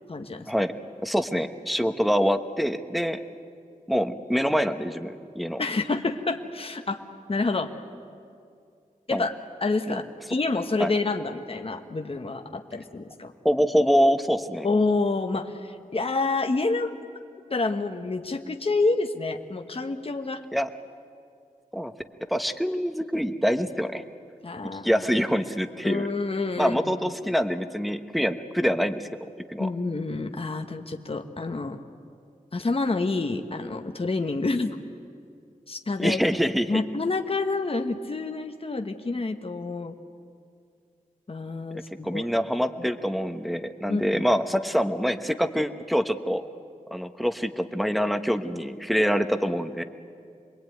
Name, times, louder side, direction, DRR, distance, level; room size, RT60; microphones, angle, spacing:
voice 1, 0.1-0.5 5.6-7.0 7.3-7.7 9.1-9.3 9.6-10.0 10.3-13.3 14.6-16.9 17.5-20.4 24.4-25.0 25.8-27.0 29.6-31.8 32.5-34.8 35.7-36.3 36.7-39.9 41.3-42.2 42.8-42.9 43.9-44.3, left 3 dB, 40° left, 5 dB, 1.3 m, -28 dB
voice 2, 1.0-3.2 3.9-5.6 9.1-9.3 9.9-10.0 10.8-10.9 13.4-14.7 20.5-20.7 21.7-21.9 22.3-24.0 24.7-26.1 26.6-29.1 29.5-29.7 36.0-36.8 41.7-46.4 46.9-49.8, equal, ahead, 9 dB, 1.2 m, -25 dB
26.5 x 21.5 x 9.3 m, 2.4 s
wide cardioid pair, 95°, 14 cm